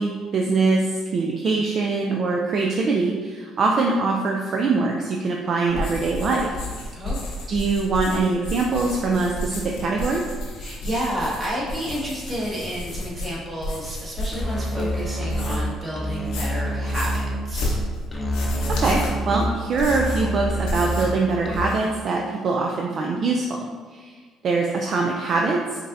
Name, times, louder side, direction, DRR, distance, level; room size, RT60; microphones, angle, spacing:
voice 1, 0.0-6.6 7.5-10.2 18.8-24.2 24.4-25.6, right 3 dB, 55° right, 0 dB, 0.4 m, -23 dB
sound 1, 5.7-15.8 16.1-21.2 21.4-22.0, left 1 dB, 90° left, 0.8 m, -32 dB
voice 2, 6.9-7.3 10.6-17.8, equal, 30° right, -5 dB, 1.4 m, -31 dB
Musical instrument, 14.3-21.9, equal, 20° left, 0.6 m, -27 dB
5.1 x 2.7 x 2.6 m, 1.5 s
supercardioid pair, 80°, 0 cm